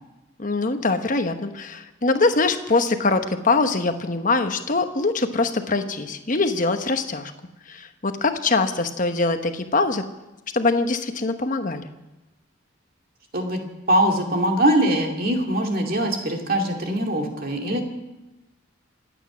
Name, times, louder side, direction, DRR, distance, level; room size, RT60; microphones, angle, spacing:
voice 1, 0.4-7.3 7.7-10.0 10.5-11.9, left 3 dB, 40° left, 8 dB, 1.1 m, -23 dB
voice 2, 13.9-17.8, right 1 dB, 50° right, 2 dB, 2.4 m, -22 dB
25.5 x 9.1 x 6.1 m, 1.0 s
head